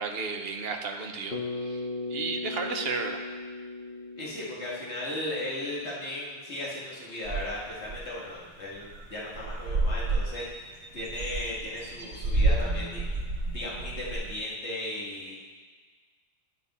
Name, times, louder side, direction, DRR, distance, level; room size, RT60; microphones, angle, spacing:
voice 1, 0.0-3.2, right 4 dB, 65° right, 4 dB, 1.0 m, -33 dB
Bass guitar, 1.3-5.7, left 3 dB, 55° left, 1.0 m, -37 dB
voice 2, 4.2-13.2 13.5-15.4, left 1 dB, 85° left, -5 dB, 2.1 m, -36 dB
sound 1, 7.2-8.0 8.4-8.5 8.8-9.1 9.3-14.3, right 2 dB, 90° right, 1.4 m, -30 dB
10.0 x 5.4 x 4.2 m, 1.5 s
omnidirectional pair, 1.1 m